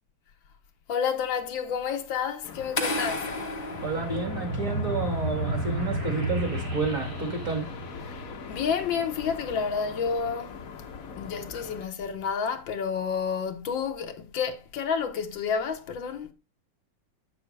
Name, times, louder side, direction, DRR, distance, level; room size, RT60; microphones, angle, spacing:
voice 1, 0.9-3.3 8.0-8.1 8.5-10.6 11.2-16.3, left 6 dB, 75° left, 1.7 m, -30 dB
sound 1, 2.4-11.8, left 5 dB, 55° left, 1.1 m, -41 dB
sound 2, 2.8-4.9, left 2 dB, 30° left, 0.8 m, -32 dB
sound 3, 3.7-8.7, right 2 dB, 75° right, 2.4 m, -32 dB
voice 2, 3.8-7.7, right 3 dB, 40° right, 2.4 m, -30 dB
7.9 x 7.1 x 3.2 m
omnidirectional pair, 2.1 m